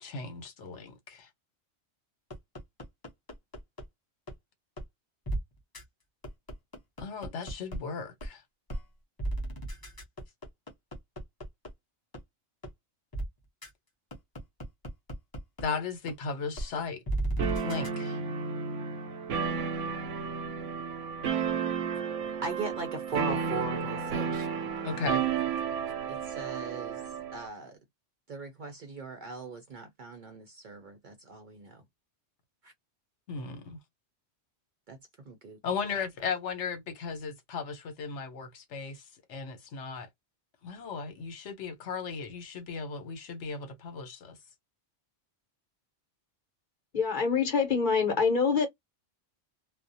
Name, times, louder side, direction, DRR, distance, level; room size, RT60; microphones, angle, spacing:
voice 1, 0.0-1.3 7.0-8.4 15.6-17.0 17.6-18.2 24.8-25.2 33.3-33.8 35.6-39.0 39.3-40.1 40.6-44.4, left 5 dB, 75° left, 1.1 m, -36 dB
sound 1, 2.3-3.8 4.3-4.4 4.8-4.9 5.3-5.4 5.7-5.8 6.2-7.8 8.2-8.3 8.7-8.8 9.2-11.7 12.1-12.2 12.6-12.7 13.1-13.3 13.6-13.7 14.1-15.6 16.1-16.2 16.6-16.7 17.1-17.9, right 2 dB, 25° left, 0.6 m, -34 dB
sound 2, 17.4-27.5, right 6 dB, 90° right, 0.9 m, -32 dB
voice 2, 22.4-24.5 26.0-27.0 27.3-27.8 28.3-31.8 32.6-32.7 35.3-35.6, right 4 dB, 55° right, 0.6 m, -39 dB
voice 3, 46.9-48.7, left 5 dB, 45° left, 0.9 m, -25 dB
2.4 x 2.0 x 2.6 m
omnidirectional pair, 1.2 m